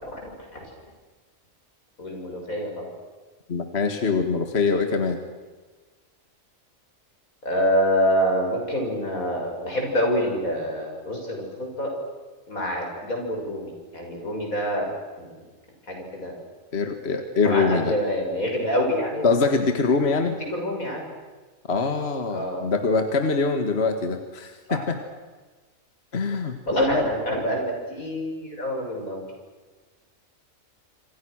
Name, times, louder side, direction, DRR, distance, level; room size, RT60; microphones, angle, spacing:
voice 1, 0.0-0.7 2.0-2.9 7.4-11.9 12.5-15.4 15.9-16.3 17.4-19.3 20.1-21.0 22.3-22.6 24.7-24.8 26.7-29.2, equal, 90° left, 1 dB, 7.1 m, -27 dB
voice 2, 3.5-5.2 16.7-17.9 19.2-20.3 21.7-25.0 26.1-27.1, left 4 dB, 50° left, 7 dB, 2.0 m, -23 dB
27.0 x 26.5 x 6.4 m, 1.3 s
omnidirectional pair, 1.4 m